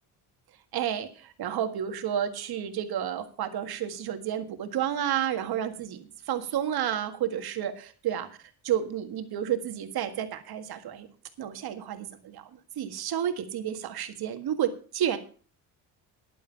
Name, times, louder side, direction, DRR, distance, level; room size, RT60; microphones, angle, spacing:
voice 1, 0.7-8.3 8.6-11.1 11.4-12.4 12.8-15.2, right 10 dB, 65° right, 8 dB, 1.8 m, -31 dB
11.0 x 9.1 x 5.7 m, 0.40 s
cardioid pair, 90°, 41 cm